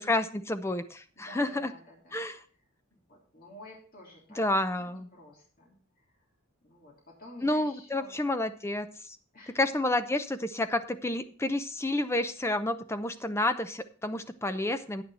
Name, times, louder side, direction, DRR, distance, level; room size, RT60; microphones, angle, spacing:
voice 1, 0.0-1.7 2.1-2.4 4.4-5.1 7.4-9.2 9.5-15.0, left 1 dB, 15° left, 10 dB, 0.7 m, -30 dB
voice 2, 1.2-2.2 2.9-4.4 4.7-5.8 6.0-6.1 6.6-8.2 9.3-9.7, equal, 45° left, -2 dB, 3.3 m, -51 dB
9.6 x 9.5 x 4.2 m, 0.41 s
head